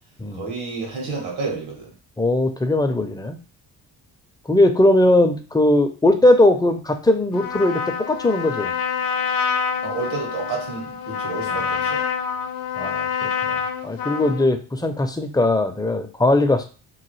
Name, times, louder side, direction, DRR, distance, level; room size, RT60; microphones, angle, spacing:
voice 1, 0.3-1.9 9.8-12.1, right 4 dB, 80° right, -1 dB, 1.7 m, -30 dB
voice 2, 2.2-3.4 4.5-7.8 8.1-8.7 11.5-11.6 12.8-16.7, left 1 dB, 10° left, 6 dB, 0.6 m, -19 dB
Trumpet, 7.3-14.5, left 7 dB, 60° left, 0.7 m, -26 dB
3.1 x 2.1 x 3.1 m, 0.35 s
supercardioid pair, 60°, 39 cm